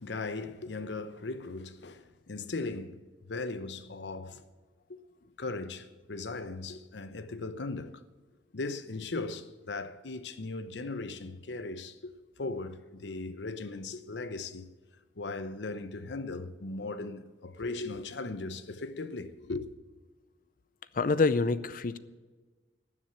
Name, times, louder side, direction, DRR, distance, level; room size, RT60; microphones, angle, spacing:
voice 1, 0.0-4.4 4.9-5.0 5.4-8.0 8.5-12.1 12.4-14.7 15.2-19.7, left 3 dB, 80° left, 0.8 m, -38 dB
voice 2, 20.9-22.0, left 3 dB, 50° left, 0.6 m, -26 dB
13.0 x 7.3 x 8.9 m
head